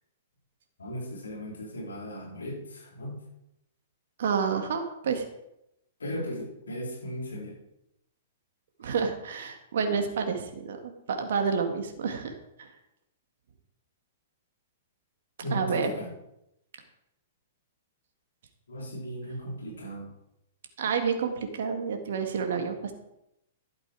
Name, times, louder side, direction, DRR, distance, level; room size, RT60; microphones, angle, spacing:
voice 1, 0.8-3.2 6.0-7.6 15.4-16.1 18.7-20.1, equal, 80° left, -2 dB, 4.5 m, -36 dB
voice 2, 4.2-5.2 8.8-12.7 15.5-15.9 20.8-22.9, right 6 dB, 65° right, 5 dB, 1.9 m, -29 dB
12.0 x 8.2 x 4.9 m, 0.83 s
figure-of-eight pair, 115°, 0 cm